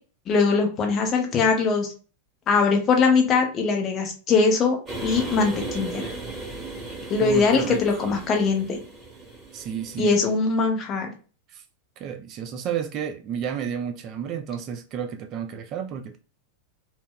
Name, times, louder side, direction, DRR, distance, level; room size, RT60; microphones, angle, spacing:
voice 1, 0.3-1.9 2.5-6.1 7.1-8.8 10.0-11.1, left 4 dB, 30° left, 0.8 m, -21 dB
sound 1, 4.8-10.3, right 2 dB, 15° right, 0.9 m, -36 dB
voice 2, 7.2-8.0 9.5-10.2 11.5-11.6 12.0-16.2, right 8 dB, 35° right, 0.3 m, -31 dB
2.1 x 2.0 x 3.6 m
figure-of-eight pair, 90°, 0 cm